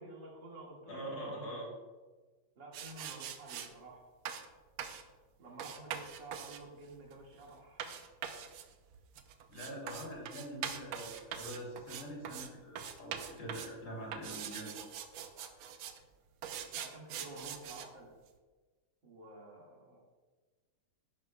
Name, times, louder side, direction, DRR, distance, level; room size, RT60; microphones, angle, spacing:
voice 1, 0.0-1.5 2.6-4.0 5.4-7.8 16.7-18.1 19.0-20.0, right 2 dB, 55° right, -3 dB, 2.5 m, -51 dB
voice 2, 0.9-1.7 9.5-14.8, equal, 55° left, -3 dB, 3.6 m, -44 dB
sound 1, 2.7-3.7 4.3-4.5 4.8-5.1 5.6-12.5 12.8-13.8 14.1-16.0 16.4-17.9, right 8 dB, 80° right, 1.5 m, -43 dB
11.5 x 10.5 x 2.2 m, 1.3 s
omnidirectional pair, 2.4 m